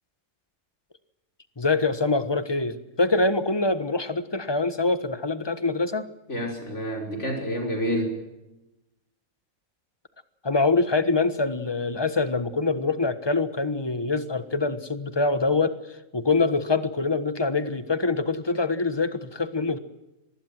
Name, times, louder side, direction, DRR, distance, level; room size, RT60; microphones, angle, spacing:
voice 1, 1.6-6.1 10.4-15.8 16.1-19.8, left 3 dB, 20° left, 12 dB, 1.3 m, -24 dB
voice 2, 6.3-8.2, equal, 50° left, 2 dB, 5.9 m, -28 dB
24.0 x 20.5 x 7.6 m, 0.97 s
omnidirectional pair, 1.5 m